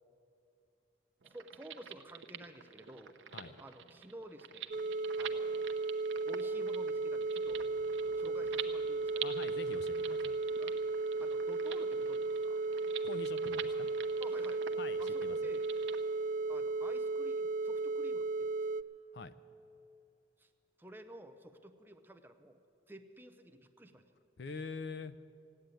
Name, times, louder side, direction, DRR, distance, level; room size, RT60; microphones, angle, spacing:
voice 1, 1.2-3.1 3.6-4.8 5.1-5.7 6.2-7.7 8.2-9.3 10.6-10.8 11.2-12.6 14.2-14.6 15.0-15.7 16.5-18.7 20.4-20.5 20.8-22.6 22.9-24.1, right 1 dB, 10° right, 7 dB, 0.6 m, -52 dB
sound 1, 1.2-16.0, right 9 dB, 75° right, 0.8 m, -47 dB
sound 2, 4.7-18.8, right 3 dB, 40° right, 0.3 m, -35 dB
sound 3, 7.4-19.2, right 4 dB, 15° left, 3.2 m, -66 dB
voice 2, 9.2-10.4 13.0-13.9 14.8-15.4 19.1-19.4 24.4-25.2, left 4 dB, 60° left, 13 dB, 0.6 m, -45 dB
15.5 x 10.0 x 9.0 m, 2.7 s
head